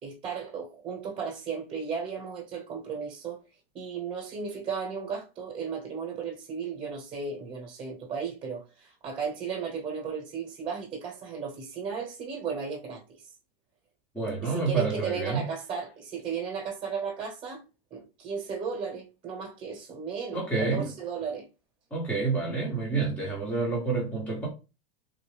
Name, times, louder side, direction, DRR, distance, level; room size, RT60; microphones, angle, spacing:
voice 1, 0.0-3.4 3.7-13.3 14.4-17.6 17.9-21.4, right 6 dB, 20° right, 1.2 m, -35 dB
voice 2, 14.1-15.4 20.3-20.9 21.9-24.5, right 4 dB, 5° left, 1.0 m, -28 dB
3.5 x 2.4 x 3.5 m
supercardioid pair, 150°, 30 cm